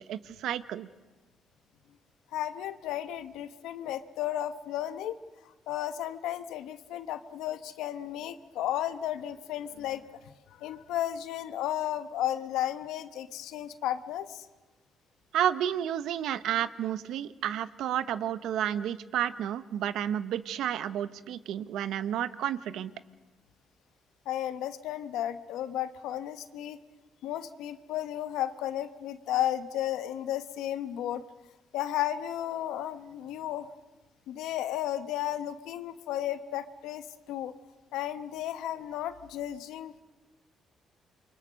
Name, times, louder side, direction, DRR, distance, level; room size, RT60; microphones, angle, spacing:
voice 1, 0.1-0.9 15.3-22.9, right 10 dB, 80° right, 14 dB, 0.9 m, -31 dB
voice 2, 2.3-5.2 5.7-10.0 10.6-14.5 24.3-26.8 27.2-31.2 31.7-33.7 34.3-37.5 37.9-40.0, left 12 dB, 90° left, 11 dB, 1.1 m, -33 dB
28.5 x 24.0 x 6.4 m, 1.2 s
cardioid pair, 90°, 0 cm